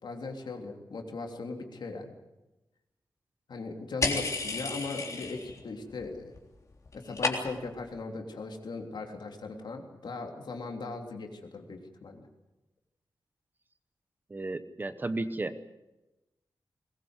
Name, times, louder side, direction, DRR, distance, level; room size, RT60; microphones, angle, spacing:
voice 1, 0.0-2.1 3.5-6.4 6.9-12.3, left 3 dB, 70° left, 3 dB, 3.4 m, -38 dB
sound 1, 4.0-5.6 5.9-6.4 6.7-7.8, left 3 dB, 40° left, 3.6 m, -32 dB
voice 2, 14.3-15.6, right 2 dB, 25° right, 11 dB, 0.9 m, -33 dB
21.5 x 20.5 x 8.2 m, 1.0 s
wide cardioid pair, 180°, 8 cm